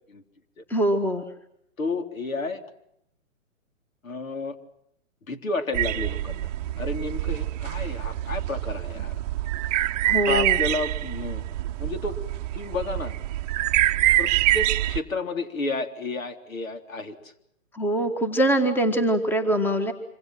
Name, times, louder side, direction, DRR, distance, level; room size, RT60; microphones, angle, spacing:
voice 1, 0.7-1.2 10.0-10.6 17.7-19.9, right 1 dB, 5° left, 9 dB, 1.7 m, -23 dB
voice 2, 1.8-2.6 4.0-4.6 5.3-9.2 10.2-11.4 11.8-12.2 12.5-13.1 14.2-17.3, left 3 dB, 75° left, 6 dB, 3.7 m, -31 dB
sound 1, 5.7-15.0, right 14 dB, 30° right, 0.9 m, -26 dB
26.5 x 25.5 x 6.0 m, 0.75 s
hypercardioid pair, 130°, 41 cm